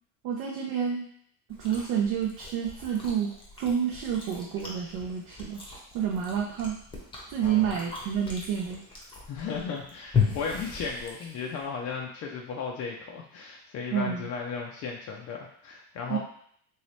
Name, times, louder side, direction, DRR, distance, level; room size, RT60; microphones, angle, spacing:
voice 1, 0.2-1.1 1.6-3.3 3.6-5.6 5.9-6.8 7.3-8.8 13.9-14.3 16.1-16.2, right 8 dB, 65° right, 0 dB, 0.6 m, -29 dB
Chewing mastication, 1.5-11.7, left 6 dB, 10° left, 0.8 m, -36 dB
voice 2, 7.4-7.8 9.3-16.2, left 5 dB, 40° left, -1 dB, 0.4 m, -35 dB
3.0 x 2.8 x 3.1 m, 0.63 s
cardioid pair, 120°, 41 cm